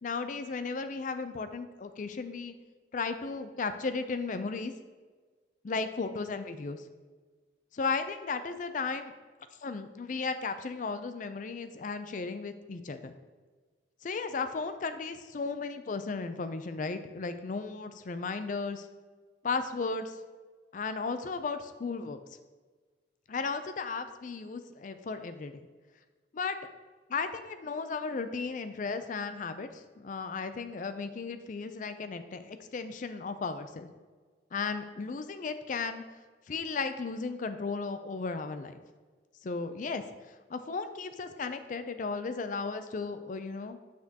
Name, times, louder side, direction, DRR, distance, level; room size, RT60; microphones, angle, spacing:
voice 1, 0.0-2.5 2.9-4.7 5.6-6.8 7.7-9.1 9.6-13.1 14.0-18.9 19.4-20.2 20.7-22.2 23.3-25.7 26.3-26.6 27.1-33.9 34.5-36.0 36.5-38.8 39.4-40.0 40.5-43.8, left 4 dB, 45° left, 10 dB, 0.4 m, -35 dB
6.6 x 5.9 x 2.8 m, 1.4 s
head